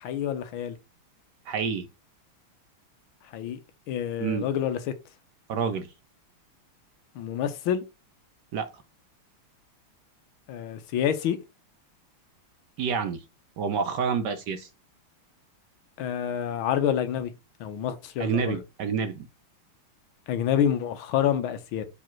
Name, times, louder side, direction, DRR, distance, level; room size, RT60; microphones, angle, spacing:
voice 1, 0.0-0.8 3.3-3.6 3.9-4.8 7.1-7.8 10.5-11.4 16.0-17.3 17.6-18.6 20.3-21.8, left 9 dB, 75° left, 1.6 m, -27 dB
voice 2, 1.5-1.9 4.2-4.4 5.5-5.9 8.5-8.8 12.8-13.2 13.6-14.7 18.2-19.3, right 6 dB, 65° right, 1.2 m, -28 dB
5.0 x 4.1 x 5.9 m
omnidirectional pair, 2.3 m